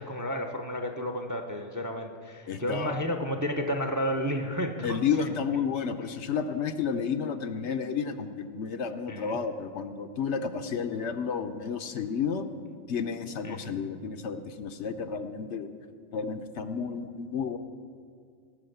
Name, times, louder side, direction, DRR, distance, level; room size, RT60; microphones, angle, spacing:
voice 1, 0.0-5.3 9.1-9.4 13.4-13.8, equal, 20° right, 5 dB, 0.6 m, -32 dB
voice 2, 2.5-3.0 4.8-12.4 12.9-15.7 16.1-17.6, left 6 dB, 65° left, 8 dB, 0.9 m, -31 dB
17.5 x 6.2 x 7.9 m, 2.2 s
omnidirectional pair, 1.4 m